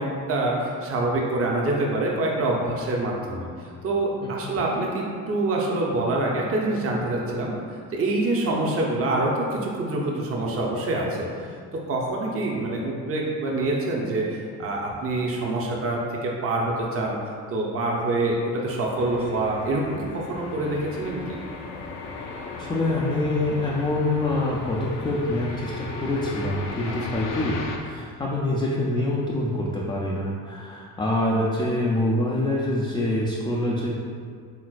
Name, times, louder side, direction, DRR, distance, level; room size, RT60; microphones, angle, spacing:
voice 1, 0.0-11.3 11.7-17.2 17.5-21.4 26.8-26.9, right 2 dB, 30° right, -2 dB, 0.7 m, -26 dB
sound 1, 19.0-27.8, left 3 dB, 60° left, 0.6 m, -36 dB
voice 2, 22.6-34.0, left 1 dB, 10° left, -5 dB, 0.4 m, -25 dB
4.4 x 3.7 x 2.4 m, 2.1 s
hypercardioid pair, 55°, 46 cm